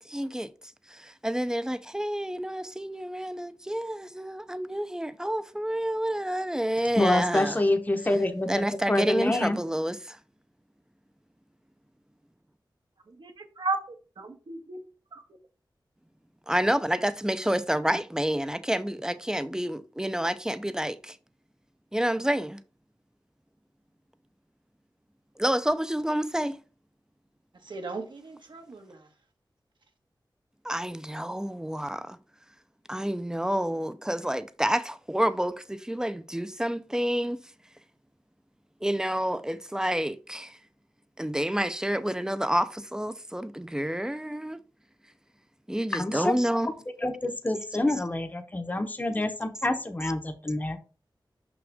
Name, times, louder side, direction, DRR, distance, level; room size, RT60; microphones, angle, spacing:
voice 1, 0.1-0.5 0.9-7.6 8.5-10.2 16.5-21.2 21.9-22.6 25.4-26.6 30.6-32.2 32.9-37.4 38.8-40.6 41.2-44.6 45.7-46.7, equal, 10° right, 0.6 m, -29 dB
voice 2, 7.0-9.6 45.9-46.3 47.0-50.8, left 1 dB, 20° left, 0.9 m, -27 dB
voice 3, 13.2-14.8 15.1-15.2 27.6-29.1, right 3 dB, 75° right, 1.5 m, -35 dB
6.1 x 6.1 x 3.5 m
wide cardioid pair, 100°, 8 cm